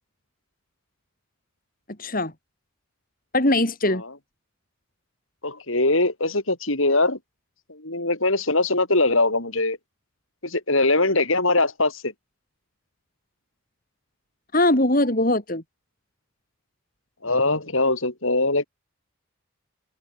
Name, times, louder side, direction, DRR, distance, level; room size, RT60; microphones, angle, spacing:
voice 1, 2.0-2.3 3.3-4.0 14.5-15.6, left 1 dB, 40° left, 3.4 m, -21 dB
voice 2, 5.4-7.2 7.7-9.8 10.4-12.1 17.2-18.7, left 2 dB, 70° left, 6.8 m, -22 dB
open air
head